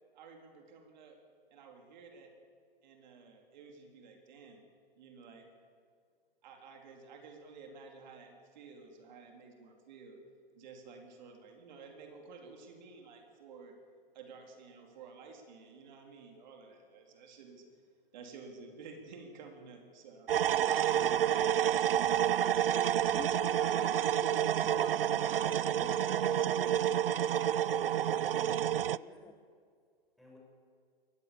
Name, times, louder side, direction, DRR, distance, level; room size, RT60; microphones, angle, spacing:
voice 1, 0.1-1.2 1.5-2.3 2.8-4.6 5.0-5.5 6.4-10.2 10.5-13.8 14.1-17.8 18.1-20.3 20.6-23.3, right 4 dB, 50° right, 3 dB, 3.9 m, -52 dB
sound 1, 20.3-29.0, right 10 dB, 70° right, 0.5 m, -29 dB
voice 2, 22.9-27.2 28.1-28.2 28.5-29.3, left 7 dB, 15° left, 6 dB, 1.2 m, -50 dB
voice 3, 27.3-29.3 30.2-30.4, left 1 dB, ahead, -3 dB, 7.3 m, -56 dB
22.5 x 18.5 x 7.2 m, 2.1 s
figure-of-eight pair, 115°, 29 cm